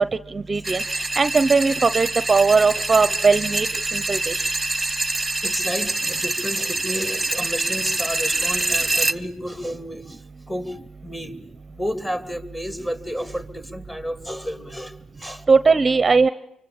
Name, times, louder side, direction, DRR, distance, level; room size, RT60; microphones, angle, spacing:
voice 1, 0.0-3.7 3.9-4.5 15.5-16.3, right 4 dB, 30° right, 15 dB, 1.0 m, -19 dB
sound 1, 0.6-9.1, right 2 dB, 10° right, 1.3 m, -25 dB
voice 2, 5.4-11.4 11.7-15.5, equal, 10° left, 11 dB, 2.7 m, -31 dB
25.0 x 25.0 x 8.8 m, 0.79 s
cardioid pair, 90°, 0 cm